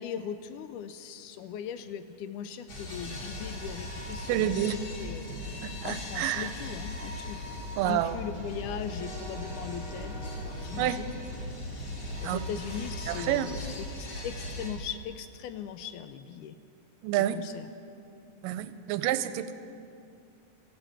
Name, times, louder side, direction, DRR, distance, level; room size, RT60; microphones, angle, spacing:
voice 1, 0.0-7.4 7.9-11.2 12.2-13.7 14.0-16.6 17.3-17.7, left 8 dB, 80° left, 10 dB, 1.9 m, -39 dB
sound 1, 2.7-14.7, left 1 dB, 50° left, 3.7 m, -38 dB
voice 2, 4.3-4.8 5.6-6.5 7.8-8.2 10.8-11.0 12.2-12.4 13.1-13.5 17.0-17.4 18.4-19.5, right 12 dB, 85° right, 13 dB, 2.2 m, -29 dB
14.0 x 11.5 x 8.8 m, 2.6 s
omnidirectional pair, 3.8 m